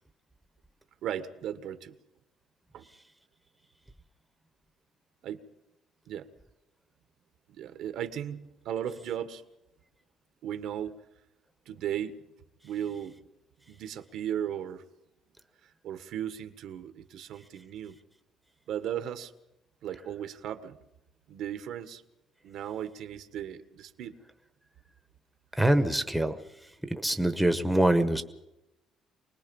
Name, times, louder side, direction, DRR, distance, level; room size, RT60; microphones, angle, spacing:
voice 1, 1.0-1.9 2.7-2.8 5.2-5.4 6.1-6.3 7.5-9.4 10.4-10.9 11.6-12.2 12.6-13.2 13.7-14.8 15.8-18.0 18.7-19.3 19.8-20.8 21.3-22.0 22.4-24.1, right 10 dB, 65° right, 10 dB, 1.6 m, -36 dB
voice 2, 25.6-26.4 26.9-28.2, right 1 dB, ahead, 8 dB, 1.1 m, -24 dB
25.0 x 20.0 x 5.5 m, 0.89 s
cardioid pair, 160°, 0 cm